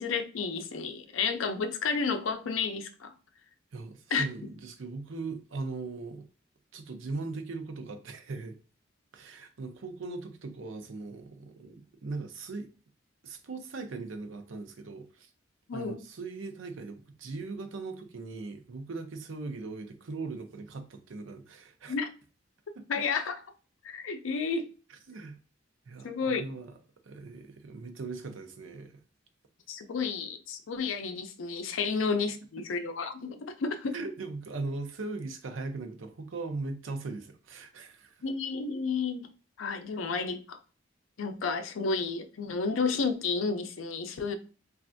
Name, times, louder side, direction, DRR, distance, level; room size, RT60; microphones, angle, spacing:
voice 1, 0.0-3.1 4.1-4.3 15.7-16.0 21.9-22.1 22.9-23.4 23.8-24.7 26.0-26.4 29.7-34.0 38.2-39.3 39.6-40.6 41.2-44.3, left 4 dB, 80° left, 0.5 m, -31 dB
voice 2, 3.7-6.3 6.7-8.6 9.1-12.7 13.2-15.3 15.7-21.9 22.8-22.9 25.1-25.4 25.9-26.7 27.0-29.0 33.9-38.2, right 3 dB, 75° right, 0.5 m, -39 dB
3.2 x 2.4 x 2.5 m
head